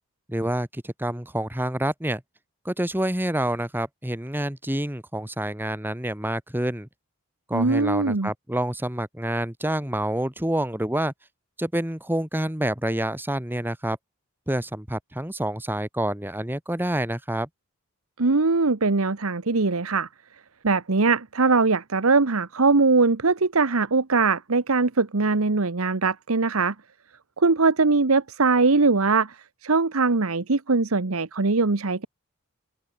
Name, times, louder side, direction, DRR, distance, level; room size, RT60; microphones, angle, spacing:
voice 1, 0.3-2.2 2.7-6.9 7.5-11.1 11.6-14.0 14.5-17.5, right 1 dB, 10° right, 2.0 m, -27 dB
voice 2, 7.5-8.3 18.2-20.1 20.6-26.7 27.4-32.1, right 3 dB, 70° right, 1.1 m, -21 dB
open air
head